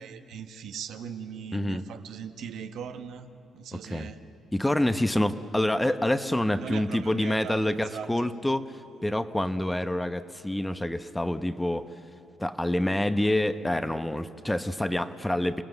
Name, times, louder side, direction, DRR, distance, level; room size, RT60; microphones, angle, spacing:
voice 1, 0.0-4.2 5.1-5.4 6.6-8.3, right 7 dB, 75° right, 7 dB, 1.2 m, -40 dB
voice 2, 3.7-4.1 4.5-8.7 9.0-11.9 12.4-15.6, left 1 dB, 10° left, 10 dB, 0.9 m, -27 dB
29.0 x 18.5 x 8.0 m, 2.6 s
cardioid pair, 90°, 0 cm